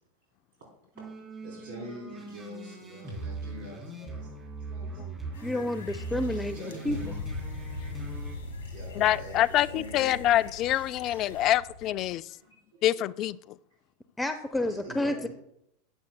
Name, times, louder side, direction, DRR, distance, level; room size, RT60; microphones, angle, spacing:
sound 1, 1.0-8.3, right 3 dB, 10° right, 3.6 m, -40 dB
voice 1, 1.4-5.3 6.1-8.2 8.6-10.4 11.1-11.2 12.3-12.8 14.7-15.3, equal, 70° right, 3.7 m, -45 dB
sound 2, 5.3-11.5, left 5 dB, 65° left, 1.8 m, -52 dB
voice 2, 5.4-7.2 14.2-15.3, left 1 dB, 10° left, 0.6 m, -30 dB
sound 3, 6.8-12.1, left 2 dB, 80° left, 1.4 m, -40 dB
voice 3, 9.0-12.3 12.8-13.4, left 13 dB, 45° left, 0.3 m, -25 dB
14.5 x 9.4 x 2.3 m
hypercardioid pair, 85°, 0 cm